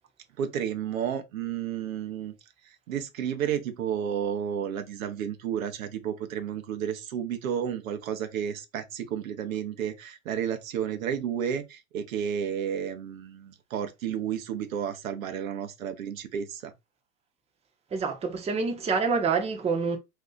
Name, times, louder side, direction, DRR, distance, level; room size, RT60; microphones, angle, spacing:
voice 1, 0.4-2.4 2.6-16.7, right 8 dB, 80° right, 0.8 m, -32 dB
voice 2, 17.9-20.0, right 5 dB, 15° right, 0.7 m, -27 dB
2.7 x 2.3 x 3.7 m
hypercardioid pair, 100°, 41 cm